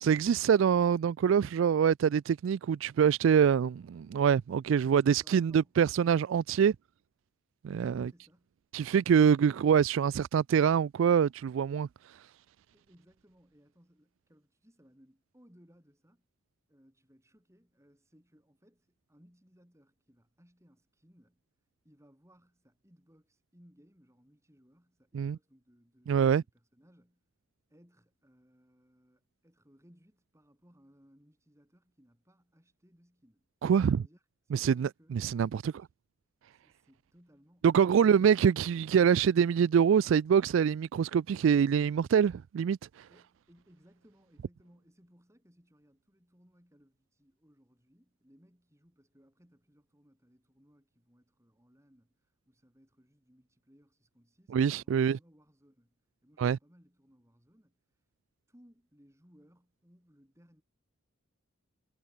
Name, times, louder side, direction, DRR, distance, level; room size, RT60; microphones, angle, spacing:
voice 1, 0.0-6.8 7.6-8.1 8.7-11.9 25.1-25.4 26.1-26.4 33.6-34.0 34.5-35.7 37.6-43.1 54.5-55.2 56.4-56.6, right 7 dB, 60° right, 0.3 m, -25 dB
voice 2, 5.1-5.8 7.9-8.5 12.7-16.3 16.7-21.4 21.8-27.3 27.7-33.5 33.9-35.9 36.5-38.3 43.0-57.8 58.5-60.6, equal, 15° right, 7.4 m, -64 dB
head